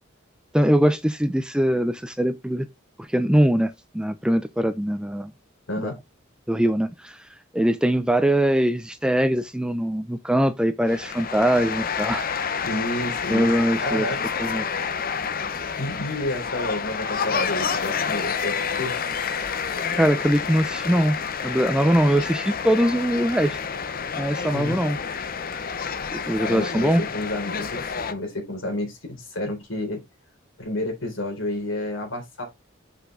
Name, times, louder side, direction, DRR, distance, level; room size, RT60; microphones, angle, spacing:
voice 1, 0.5-2.7 3.0-5.3 5.8-5.9 6.5-7.2 7.5-12.3 13.3-14.1 14.4-14.6 19.9-21.2 21.4-23.6 24.2-25.0 26.1-27.0, equal, 5° right, 0.5 m, -22 dB
voice 2, 5.7-6.0 12.6-13.5 13.8-14.2 15.8-18.9 24.5-24.8 26.4-30.0 30.6-32.4, left 1 dB, 70° left, 3.6 m, -30 dB
sound 1, 10.9-28.1, left 6 dB, 45° left, 0.7 m, -29 dB
6.0 x 5.8 x 3.7 m
head